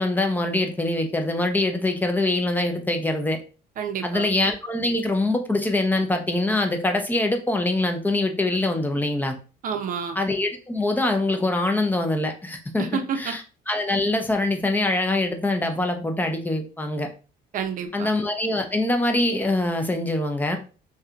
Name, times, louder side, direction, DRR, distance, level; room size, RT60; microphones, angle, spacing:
voice 1, 0.0-3.4 4.0-9.3 10.2-12.9 13.2-13.4 13.7-17.1 17.9-20.6, left 2 dB, 10° left, 5 dB, 0.5 m, -24 dB
voice 2, 3.8-4.3 9.6-10.2 12.8-13.3 17.5-18.1, right 7 dB, 55° right, 6 dB, 0.6 m, -29 dB
3.2 x 2.7 x 2.4 m, 0.35 s
cardioid pair, 110°, 17 cm